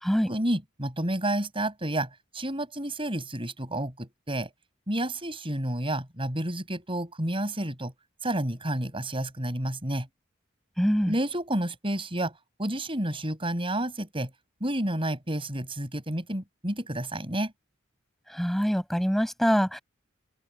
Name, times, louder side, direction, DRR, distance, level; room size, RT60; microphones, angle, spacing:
voice 1, 0.3-4.5 4.9-7.9 8.2-10.1 11.1-12.3 12.6-14.3 14.6-17.5, right 1 dB, 25° right, 6.5 m, -30 dB
voice 2, 10.8-11.1 18.3-19.8, equal, ahead, 5.7 m, -24 dB
open air
head